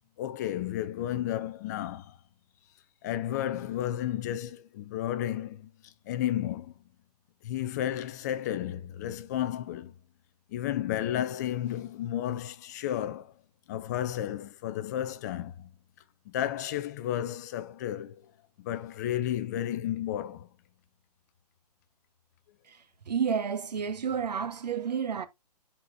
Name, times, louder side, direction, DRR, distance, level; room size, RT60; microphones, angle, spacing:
voice 1, 0.2-2.2 3.0-6.7 7.4-9.9 10.5-13.3 13.7-15.7 16.3-18.2 18.6-20.5, left 12 dB, 25° left, 0.5 m, -32 dB
voice 2, 23.1-25.3, right 7 dB, 80° right, 1.3 m, -30 dB
10.5 x 4.3 x 2.6 m
hypercardioid pair, 150°, 21 cm